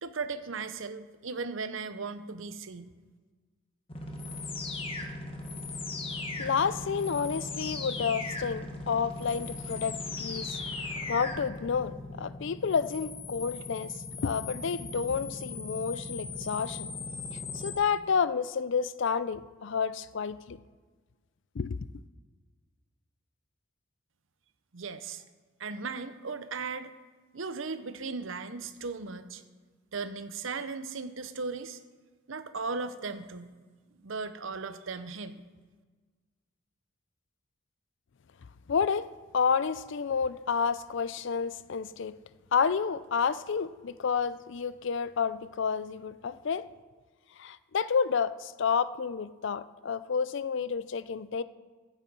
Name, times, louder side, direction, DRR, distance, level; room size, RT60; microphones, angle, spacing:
voice 1, 0.0-2.9 24.7-25.2 25.6-26.9 27.3-29.4 29.9-31.8 32.3-33.5 34.0-35.4, right 4 dB, 65° right, 0.7 m, -37 dB
sound 1, 3.9-17.8, left 3 dB, 25° left, 1.2 m, -38 dB
voice 2, 6.4-10.6 11.1-16.9 17.5-20.6 21.6-21.8 38.7-42.2 42.5-46.6 47.4-51.4, left 6 dB, 60° left, 0.4 m, -30 dB
15.0 x 7.3 x 5.4 m
head